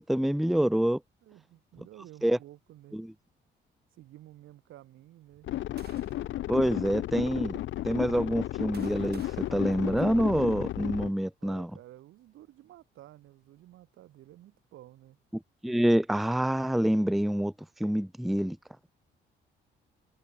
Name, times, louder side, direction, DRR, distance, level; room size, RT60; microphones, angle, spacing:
voice 1, 0.0-1.0 2.2-2.4 2.9-3.1 6.5-7.6 7.8-11.7 15.6-17.5 17.8-18.6, equal, ahead, 0.6 m, -26 dB
voice 2, 1.2-3.0 3.9-5.5 11.4-15.2, right 14 dB, 85° right, 6.0 m, -52 dB
sound 1, 5.3-6.4 7.2-7.3 8.2-10.6, right 8 dB, 55° right, 3.3 m, -56 dB
sound 2, 5.4-11.1, left 14 dB, 75° left, 0.9 m, -33 dB
cardioid pair, 90°, 20 cm